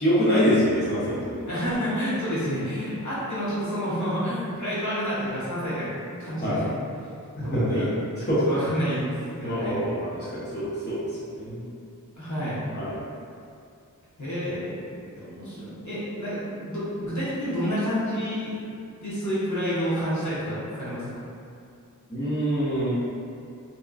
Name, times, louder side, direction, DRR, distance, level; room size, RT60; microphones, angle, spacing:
voice 1, 0.0-1.4 6.4-6.6 7.5-7.9 8.2-8.4 9.4-11.7 12.7-13.0 22.1-22.9, equal, 35° left, -11 dB, 0.8 m, -25 dB
voice 2, 1.5-5.9 6.2-6.7 7.4-7.9 8.5-9.0 9.3-9.7 12.2-12.6 14.2-14.8 15.1-18.6 19.0-21.1, equal, 65° left, -11 dB, 1.0 m, -29 dB
2.8 x 2.4 x 2.3 m, 2.4 s
wide cardioid pair, 65°, 32 cm